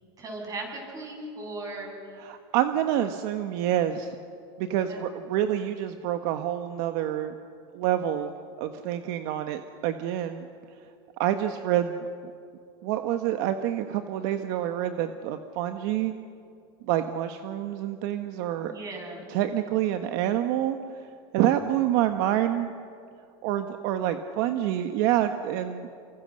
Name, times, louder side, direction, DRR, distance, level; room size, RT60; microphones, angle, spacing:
voice 1, 0.2-1.9 4.9-5.0 18.6-19.3, right 2 dB, 25° right, 1 dB, 7.7 m, -37 dB
voice 2, 2.2-4.2 4.6-7.3 7.7-10.5 11.2-12.0 12.8-16.1 16.9-18.7 19.3-20.8 21.3-22.7 23.4-25.9, right 11 dB, 60° right, 7 dB, 1.3 m, -27 dB
30.0 x 25.0 x 6.5 m, 2.3 s
supercardioid pair, 140°, 13 cm